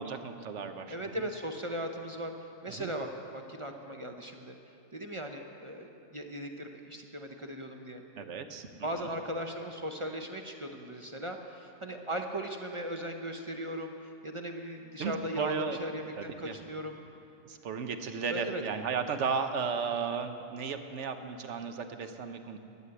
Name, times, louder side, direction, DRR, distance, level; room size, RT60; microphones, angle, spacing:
voice 1, 0.0-1.0 2.8-2.9 8.2-8.7 9.0-9.1 15.0-15.8 16.2-16.6 17.4-22.6, right 5 dB, 65° right, 7 dB, 1.1 m, -34 dB
voice 2, 0.9-2.3 2.6-4.6 4.9-8.0 8.8-17.0 18.3-18.6, right 1 dB, 30° right, 3 dB, 0.6 m, -38 dB
12.5 x 9.7 x 7.9 m, 2.8 s
omnidirectional pair, 1.4 m